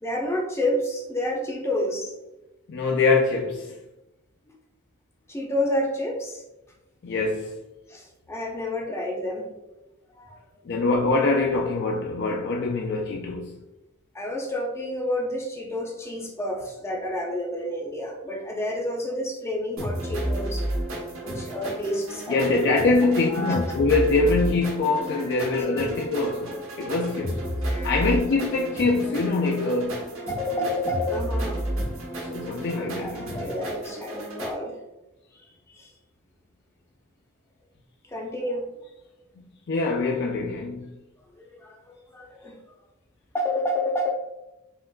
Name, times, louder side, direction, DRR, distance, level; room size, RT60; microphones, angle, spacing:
voice 1, 0.0-2.1 5.3-6.4 7.9-9.5 10.2-10.4 14.1-20.7 21.2-22.7 23.3-23.6 25.5-25.7 27.7-28.2 30.3-31.6 33.0-34.7 35.7-35.9 38.1-38.6 41.6-42.5 43.3-44.1, left 1 dB, 15° left, 0.6 m, -29 dB
voice 2, 2.7-3.8 7.0-7.7 10.6-13.6 22.3-27.4 27.8-30.1 32.3-33.6 39.7-41.0, left 3 dB, 55° left, 0.4 m, -24 dB
sound 1, 19.8-34.5, right 1 dB, 85° right, 1.1 m, -32 dB
5.6 x 2.4 x 2.2 m
head